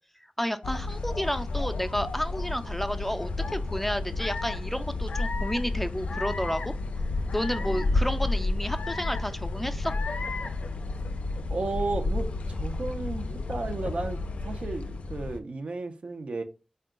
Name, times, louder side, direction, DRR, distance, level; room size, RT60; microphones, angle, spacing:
voice 1, 0.4-6.7 7.3-9.9, equal, 10° left, 0.3 m, -31 dB
sound 1, 0.6-15.4, left 2 dB, 85° left, 0.3 m, -31 dB
voice 2, 7.6-8.0 11.5-16.4, right 3 dB, 75° right, 0.5 m, -34 dB
3.7 x 2.2 x 3.6 m
wide cardioid pair, 50°, 2 cm